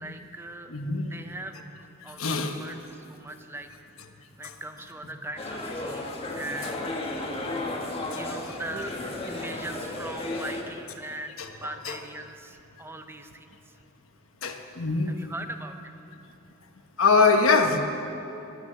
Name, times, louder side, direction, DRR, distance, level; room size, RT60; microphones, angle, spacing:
voice 1, 0.0-0.8 1.1-3.7 4.4-6.8 8.1-9.0 9.3-13.7 15.1-15.8, right 2 dB, 10° right, 7 dB, 0.6 m, -40 dB
voice 2, 0.7-1.1 2.2-2.5 4.4-4.5 6.0-6.3 8.1-8.2 11.4-11.5 11.8-12.0 14.4-15.2 17.0-17.8, left 4 dB, 70° left, 5 dB, 1.2 m, -23 dB
sound 1, 5.4-10.6, left 2 dB, 30° left, 1.4 m, -33 dB
17.0 x 9.3 x 7.4 m, 2.8 s
head